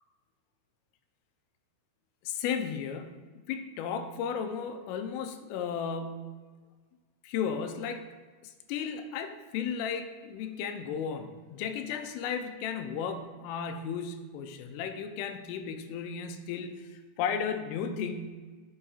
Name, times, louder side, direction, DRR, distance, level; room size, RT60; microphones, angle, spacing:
voice 1, 2.2-6.2 7.2-8.1 8.4-18.3, left 7 dB, 85° left, 7 dB, 3.1 m, -34 dB
8.4 x 7.0 x 2.4 m, 1.4 s
omnidirectional pair, 5.6 m